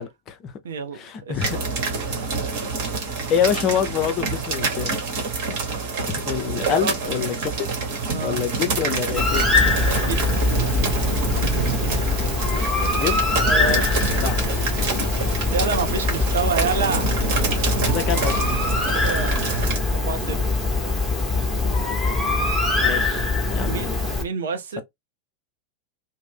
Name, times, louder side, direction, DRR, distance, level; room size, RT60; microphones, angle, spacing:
voice 1, 0.0-0.5 0.9-1.6 2.1-2.2 3.3-5.0 6.1-7.7 8.2-9.5 12.8-13.3 13.6-14.5 14.9-15.1 17.9-18.4 22.7-24.0, left 8 dB, 35° left, 0.5 m, -27 dB
voice 2, 0.6-1.4 6.6-6.9 8.1-8.4 9.9-10.3 11.1-11.8 12.5-12.7 13.4-13.9 15.5-17.1 18.9-20.4 23.6-24.8, right 5 dB, 65° right, 0.6 m, -28 dB
sound 1, 1.4-19.8, right 4 dB, 45° right, 1.1 m, -27 dB
Bird, 9.2-24.2, left 3 dB, 5° left, 1.0 m, -23 dB
2.5 x 2.1 x 3.4 m
figure-of-eight pair, 90°, 0 cm